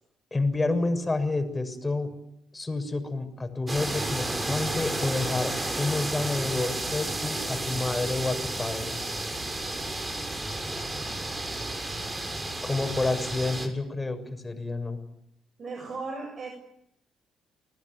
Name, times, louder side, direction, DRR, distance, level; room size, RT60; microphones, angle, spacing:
voice 1, 0.3-2.1 2.5-9.0 12.6-15.0, left 2 dB, 20° left, 7 dB, 6.8 m, -29 dB
sound 1, 3.7-13.7, right 2 dB, 25° right, 7.1 m, -32 dB
voice 2, 15.6-16.5, right 3 dB, 45° right, 4 dB, 7.8 m, -36 dB
30.0 x 21.0 x 9.5 m, 0.79 s
cardioid pair, 90°, 0 cm